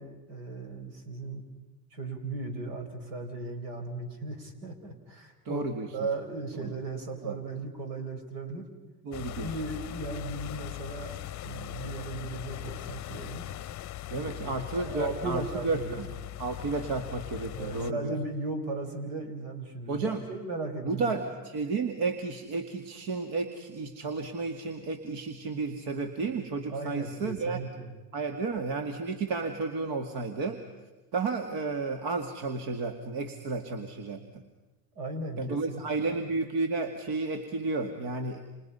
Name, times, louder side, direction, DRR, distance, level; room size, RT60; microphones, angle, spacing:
voice 1, 0.0-1.4 1.9-5.7 5.9-8.7 9.4-13.4 14.1-16.0 17.5-21.3 26.7-27.9 34.9-36.2, right 3 dB, 75° right, 6 dB, 4.5 m, -37 dB
voice 2, 5.5-5.9 6.6-6.7 7.2-7.4 9.0-9.5 14.1-16.1 16.4-18.1 19.9-20.3 20.8-27.6 28.1-30.6 31.1-34.4 35.4-38.4, right 3 dB, 60° right, 5 dB, 2.2 m, -32 dB
sound 1, 9.1-17.9, left 15 dB, 40° left, 0.7 m, -40 dB
29.0 x 28.0 x 5.6 m, 1.2 s
hypercardioid pair, 85°, 47 cm